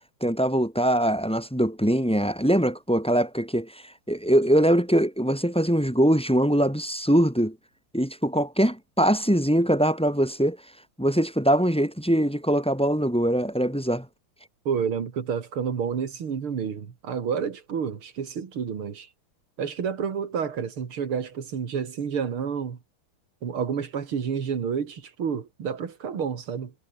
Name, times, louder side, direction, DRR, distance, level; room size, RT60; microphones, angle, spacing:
voice 1, 0.2-7.6 7.9-10.6 11.0-14.1, equal, 5° left, 3.7 m, -22 dB
voice 2, 14.6-19.1 19.6-22.8 23.4-26.7, right 7 dB, 90° right, 3.1 m, -29 dB
omnidirectional pair, 2.3 m